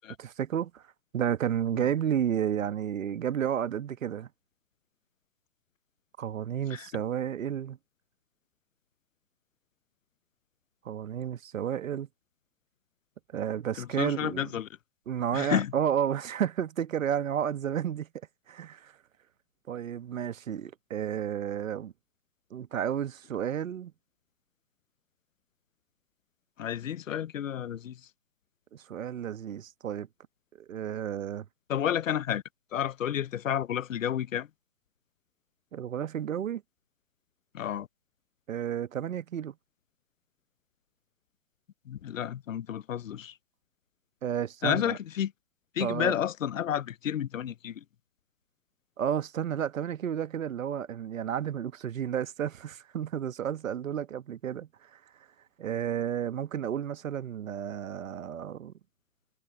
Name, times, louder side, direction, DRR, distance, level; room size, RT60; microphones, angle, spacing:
voice 1, 0.2-0.8 1.1-4.3 6.2-7.8 10.8-12.1 13.3-14.5 15.1-18.1 18.5-18.9 19.7-21.9 22.5-23.9 28.7-30.1 30.6-31.5 35.7-36.6 38.5-39.5 44.2-45.0 45.8-46.1 49.0-55.0 55.6-58.7, right 9 dB, 55° right, 1.3 m, -31 dB
voice 2, 13.8-14.7 15.3-15.7 26.6-28.1 31.7-32.4 32.7-34.5 37.5-37.9 41.9-43.4 44.6-45.3 45.7-47.8, left 10 dB, 55° left, 0.7 m, -31 dB
figure-of-eight pair, 130°, 48 cm